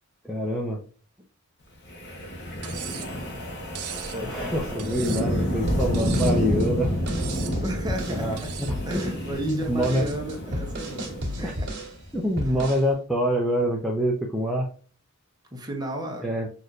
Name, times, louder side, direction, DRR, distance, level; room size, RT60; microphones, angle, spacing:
voice 1, 0.2-0.8 4.2-6.9 8.1-8.4 9.5-10.1 11.4-11.5 12.1-14.7 16.2-16.5, equal, ahead, 0.5 m, -26 dB
Wind, 1.9-12.1, equal, 55° left, 1.1 m, -29 dB
Cutlery silverware, 2.6-3.2 3.8-4.2 4.8-5.4 5.9-6.4 7.1-7.6 8.4-8.8, right 11 dB, 80° right, 0.6 m, -38 dB
voice 2, 4.1-5.5 7.6-8.6 8.8-11.7 12.5-12.7 15.5-16.3, right 1 dB, 20° right, 0.9 m, -33 dB
sound 1, 5.7-8.2 8.7-9.2 9.5-12.0 12.4-12.9, equal, 55° right, 1.6 m, -33 dB
6.2 x 2.6 x 2.4 m
head